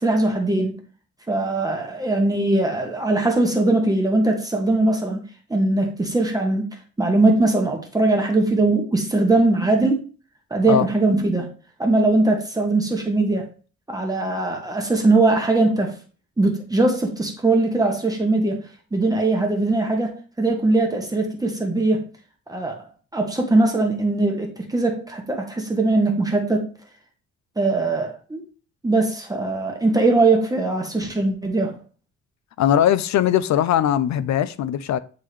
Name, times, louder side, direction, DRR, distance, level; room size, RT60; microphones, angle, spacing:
voice 1, 0.0-0.8 1.3-5.2 5.5-6.7 7.0-10.1 10.5-11.5 11.8-13.5 13.9-15.9 16.4-18.6 18.9-22.0 22.5-22.8 23.1-26.7 27.6-28.4 28.8-31.7, right 2 dB, 10° right, 1.1 m, -20 dB
voice 2, 32.6-35.0, left 10 dB, 70° left, 0.5 m, -20 dB
9.3 x 3.6 x 3.3 m
cardioid pair, 150°, 30 cm